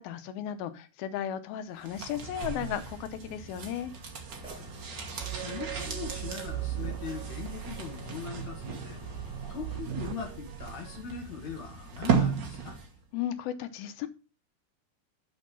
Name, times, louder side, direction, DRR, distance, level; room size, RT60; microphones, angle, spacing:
voice 1, 0.0-3.9 13.1-14.1, left 10 dB, 90° left, 2.7 m, -35 dB
sound 1, 1.8-13.0 13.3-13.4, right 6 dB, 60° right, 1.1 m, -36 dB
sound 2, 4.3-9.8, equal, 5° right, 0.7 m, -48 dB
sound 3, 5.2-11.0, right 15 dB, 80° right, 2.3 m, -39 dB
voice 2, 5.3-9.0 9.5-12.8, left 6 dB, 55° left, 2.7 m, -40 dB
6.5 x 6.1 x 5.9 m
omnidirectional pair, 4.2 m